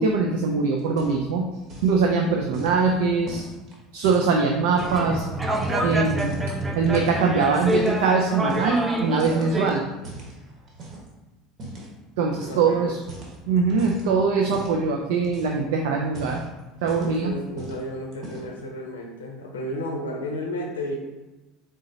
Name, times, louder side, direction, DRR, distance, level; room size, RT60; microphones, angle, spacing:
voice 1, 0.0-1.4 1.8-3.4 3.9-5.3 5.8-6.4 6.7-9.8 12.2-13.0 13.5-16.4 16.8-17.3, right 4 dB, 65° right, 1 dB, 0.4 m, -22 dB
sound 1, 0.8-1.4 1.6-2.0 2.5-5.1 5.5-6.5 6.9-8.0 8.5-8.9 9.2-11.1 11.6-11.9 12.3-12.6 12.9-14.1 14.5-14.8 15.2-15.7 16.0-17.2 17.6-17.8 18.1-18.6, right 2 dB, 45° right, 1.1 m, -40 dB
sound 2, 4.8-9.7, right 1 dB, 15° right, 0.6 m, -27 dB
voice 2, 12.3-12.9 14.4-14.5 16.9-21.0, left 1 dB, 75° left, 1 dB, 0.5 m, -33 dB
3.7 x 3.7 x 2.7 m, 1.1 s
figure-of-eight pair, 65°, 0 cm